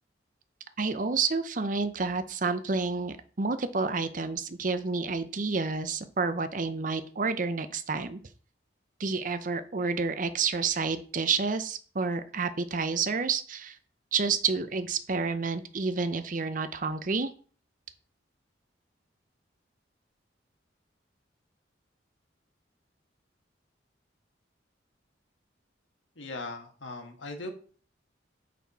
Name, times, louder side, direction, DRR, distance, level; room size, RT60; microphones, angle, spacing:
voice 1, 0.8-8.2 9.0-13.7 14.1-17.3, right 4 dB, 45° right, 11 dB, 0.7 m, -29 dB
voice 2, 26.2-27.5, left 2 dB, 90° left, 4 dB, 1.5 m, -39 dB
9.3 x 4.3 x 4.2 m, 0.42 s
head